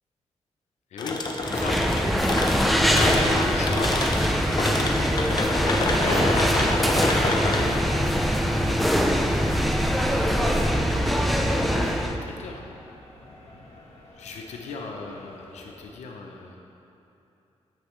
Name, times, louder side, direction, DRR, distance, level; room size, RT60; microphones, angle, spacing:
voice 1, 0.9-2.6 2.8-4.0 5.3-7.9 10.5-12.6 14.2-16.6, left 4 dB, 90° left, 1 dB, 0.8 m, -37 dB
sound 1, 1.0-9.7, left 2 dB, 40° left, 0.8 m, -29 dB
sound 2, 1.4-12.2, equal, ahead, 0.6 m, -23 dB
sound 3, 2.6-15.8, left 1 dB, 65° left, 1.8 m, -38 dB
10.5 x 7.6 x 3.2 m, 2.9 s
cardioid pair, 90°, 11 cm